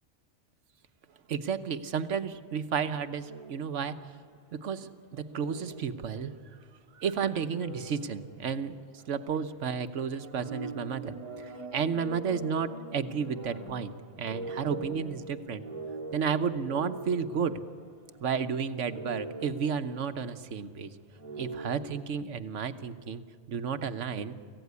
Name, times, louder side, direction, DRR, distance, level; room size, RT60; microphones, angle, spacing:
voice 1, 1.3-4.1 4.5-6.4 6.9-15.6 16.1-17.6 18.2-20.9 21.4-23.2 23.5-24.4, right 6 dB, 80° right, 10 dB, 1.3 m, -32 dB
sound 1, 3.2-4.2 5.3-6.6 7.2-9.1 9.3-9.5 10.0-18.5 18.8-20.4 21.1-21.7, right 3 dB, 35° right, 2.9 m, -43 dB
24.5 x 16.0 x 9.6 m, 2.1 s
omnidirectional pair, 1.2 m